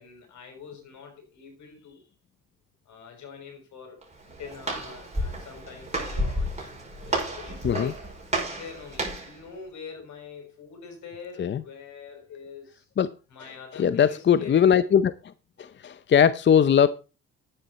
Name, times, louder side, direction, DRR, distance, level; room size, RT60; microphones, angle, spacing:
voice 1, 0.0-2.1 2.9-6.7 7.1-8.1 8.5-12.9 13.3-14.6, left 6 dB, 70° left, 4 dB, 5.7 m, -44 dB
Walk footsteps, 4.0-9.4, right 1 dB, 20° right, 5.5 m, -31 dB
voice 2, 13.8-15.1 15.6-16.9, left 8 dB, 40° left, 14 dB, 0.6 m, -20 dB
11.0 x 9.1 x 4.1 m, 0.32 s
cardioid pair, 90°, 30 cm